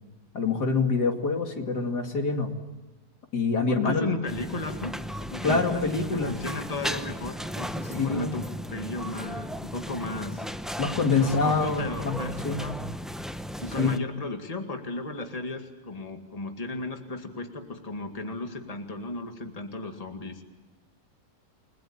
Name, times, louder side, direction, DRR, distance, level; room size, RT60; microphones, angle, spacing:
voice 1, 0.3-2.5 3.3-4.1 5.4-6.3 7.8-8.3 10.8-12.7 13.8-13.9, left 4 dB, 70° left, 4 dB, 3.0 m, -26 dB
voice 2, 3.7-5.0 5.3-5.8 6.1-10.4 11.2-12.8 13.6-20.4, left 2 dB, 20° left, 4 dB, 2.2 m, -35 dB
sound 1, 4.3-14.0, equal, ahead, 0.4 m, -35 dB
30.0 x 21.0 x 8.7 m, 1.2 s
omnidirectional pair, 1.8 m